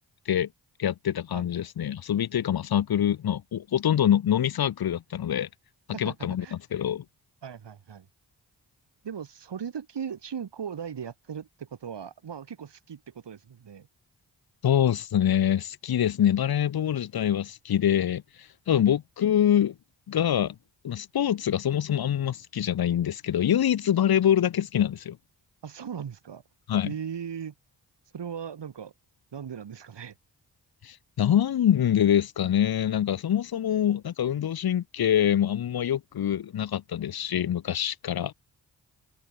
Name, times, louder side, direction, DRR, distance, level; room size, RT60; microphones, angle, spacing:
voice 1, 0.8-5.5 6.0-6.4 6.7-7.0 14.6-18.2 18.7-19.7 20.1-20.5 20.8-25.2 26.7-26.9 30.8-38.3, left 10 dB, 60° left, 0.7 m, -25 dB
voice 2, 5.9-6.5 7.4-8.1 9.0-13.9 18.7-18.8 25.6-26.4 26.8-27.5 28.1-28.9 29.3-30.2, right 7 dB, 75° right, 4.1 m, -38 dB
cardioid pair, 55°, 42 cm